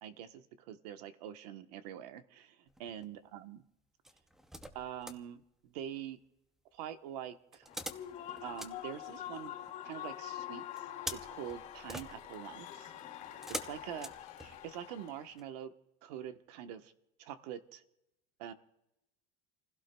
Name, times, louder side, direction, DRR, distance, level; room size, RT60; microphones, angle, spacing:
voice 1, 0.0-2.5 2.8-3.6 4.7-6.2 6.7-7.7 8.4-9.5 9.8-10.6 11.1-12.9 13.6-14.1 14.4-15.7 16.0-16.9 17.2-17.8 18.4-18.5, right 10 dB, 80° right, 9 dB, 1.1 m, -45 dB
sound 1, 2.7-3.2 4.0-5.3 7.5-9.7 10.8-14.9 15.4-15.5, equal, ahead, 0.5 m, -46 dB
Human voice / Cheering / Applause, 7.7-15.3, left 11 dB, 40° left, 2.6 m, -46 dB
29.5 x 16.0 x 2.2 m, 0.87 s
cardioid pair, 180°, 20 cm